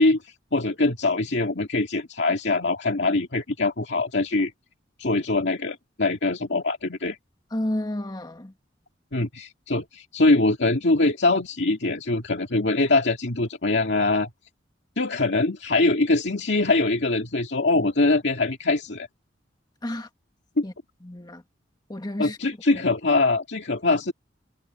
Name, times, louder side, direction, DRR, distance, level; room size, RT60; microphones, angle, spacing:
voice 1, 0.0-4.5 5.0-7.2 9.1-14.3 15.0-19.1 20.6-20.7 22.2-24.1, left 2 dB, 70° left, 2.2 m, -23 dB
voice 2, 7.5-8.5 19.8-20.1 20.6-20.7 21.0-21.4 21.9-22.4, left 1 dB, 20° left, 1.6 m, -30 dB
head